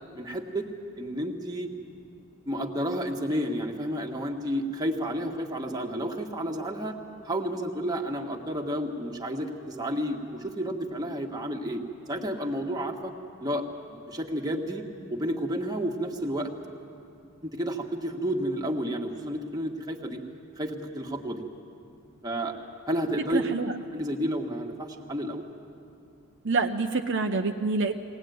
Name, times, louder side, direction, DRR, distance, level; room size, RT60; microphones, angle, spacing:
voice 1, 0.1-0.7 1.0-1.7 2.5-7.0 7.2-11.8 12.1-13.1 13.4-14.8 15.1-16.5 17.4-20.2 20.6-21.4 22.2-22.5 22.9-25.4, equal, 15° right, 2 dB, 1.5 m, -31 dB
voice 2, 23.3-23.7 26.4-27.9, right 3 dB, 55° right, 4 dB, 0.8 m, -26 dB
22.0 x 18.0 x 9.3 m, 2.5 s
head